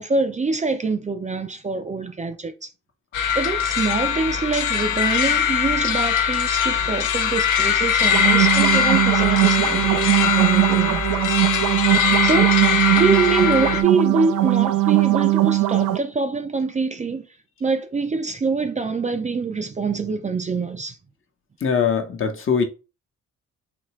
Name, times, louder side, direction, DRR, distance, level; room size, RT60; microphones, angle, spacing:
voice 1, 0.0-2.7 3.3-11.4 12.2-12.5 13.0-17.3 17.6-21.0, right 4 dB, 25° right, 0.5 m, -25 dB
sound 1, 3.1-13.8, left 8 dB, 85° left, 0.7 m, -21 dB
sound 2, 8.0-16.0, right 16 dB, 75° right, 0.5 m, -20 dB
voice 2, 21.6-22.7, left 6 dB, 45° left, 1.0 m, -21 dB
4.1 x 2.8 x 3.1 m
cardioid pair, 90°, 30 cm